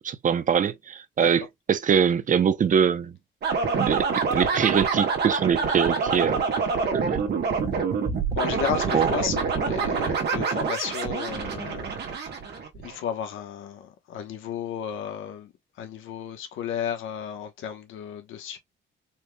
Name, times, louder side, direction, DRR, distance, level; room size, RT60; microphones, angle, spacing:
voice 1, 0.0-3.1 3.8-6.4 6.9-7.3 8.9-9.1, right 7 dB, 40° right, 0.6 m, -23 dB
sound 1, 3.4-13.0, right 5 dB, 55° right, 1.4 m, -26 dB
voice 2, 8.3-12.3 12.8-18.6, left 9 dB, 80° left, 1.1 m, -33 dB
4.3 x 3.3 x 2.3 m
cardioid pair, 90°, 20 cm